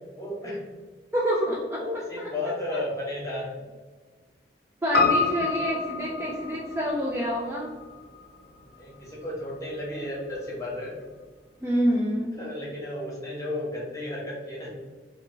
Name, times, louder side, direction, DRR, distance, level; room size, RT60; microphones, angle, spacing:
voice 1, 0.2-0.6 1.8-3.7 8.7-10.9 12.4-14.7, left 1 dB, 15° left, -5 dB, 1.0 m, -33 dB
voice 2, 1.1-1.8 2.2-2.3 2.7-2.8 4.8-7.7 11.6-12.3, equal, 10° right, -4 dB, 0.3 m, -27 dB
Piano, 4.9-9.4 9.7-9.8, left 4 dB, 55° left, 0.7 m, -28 dB
3.1 x 2.2 x 4.0 m, 1.4 s
head